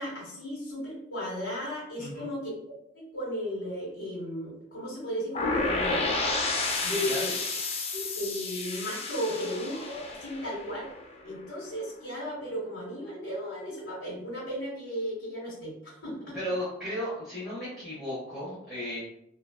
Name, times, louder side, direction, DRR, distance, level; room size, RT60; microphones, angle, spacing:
voice 1, 0.0-2.5 2.9-6.4 6.8-7.3 7.9-10.9 11.2-16.4, equal, 80° left, -7 dB, 1.1 m, -35 dB
voice 2, 2.0-2.3 6.8-7.3 16.3-19.0, equal, ahead, -11 dB, 0.9 m, -35 dB
sound 1, 5.4-11.2, left 3 dB, 30° left, 0.3 m, -31 dB
2.8 x 2.3 x 2.2 m, 0.79 s
head